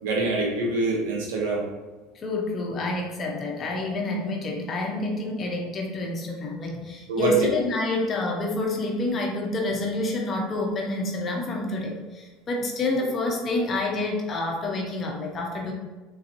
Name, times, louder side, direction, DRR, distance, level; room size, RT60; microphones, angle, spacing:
voice 1, 0.0-1.6 7.1-7.5, right 3 dB, 80° right, -2 dB, 1.2 m, -24 dB
voice 2, 2.1-15.7, left 2 dB, 35° left, 1 dB, 0.9 m, -28 dB
3.9 x 3.9 x 3.0 m, 1.2 s
supercardioid pair, 95°, 0 cm